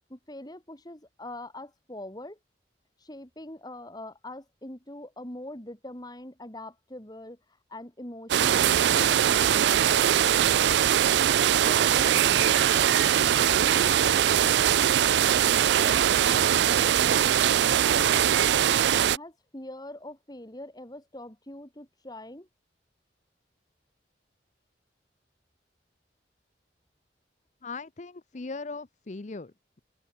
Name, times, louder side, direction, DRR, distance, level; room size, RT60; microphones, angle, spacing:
voice 1, 0.1-2.4 3.0-7.4 7.7-10.2 11.6-14.7 15.6-17.3 17.7-22.5, left 1 dB, 20° left, 2.9 m, -43 dB
sound 1, 8.3-19.2, right 10 dB, 70° right, 0.4 m, -22 dB
voice 2, 27.6-29.8, left 3 dB, 40° left, 0.7 m, -39 dB
open air
head